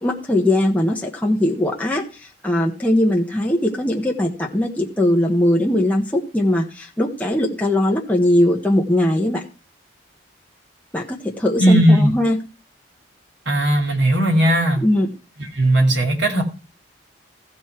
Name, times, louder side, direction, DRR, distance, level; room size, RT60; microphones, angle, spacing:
voice 1, 0.0-2.0 2.4-9.4 10.9-12.4 14.8-15.1, left 1 dB, 10° left, -2 dB, 1.4 m, -20 dB
voice 2, 11.6-12.1 13.5-14.8 15.5-16.4, right 1 dB, 70° right, 2 dB, 2.6 m, -16 dB
15.0 x 5.5 x 4.6 m, 0.33 s
head